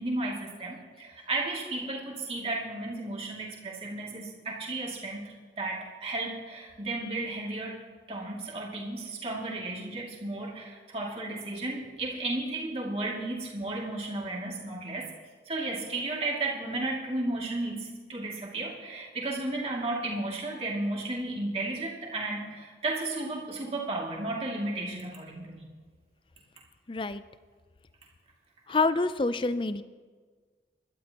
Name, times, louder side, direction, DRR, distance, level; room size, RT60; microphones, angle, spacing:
voice 1, 0.0-7.8 8.1-15.1 15.5-25.6, right 2 dB, 35° right, -3 dB, 2.4 m, -34 dB
voice 2, 26.9-27.2 28.7-29.8, left 3 dB, 30° left, 13 dB, 0.4 m, -27 dB
22.0 x 12.0 x 3.0 m, 1.5 s
head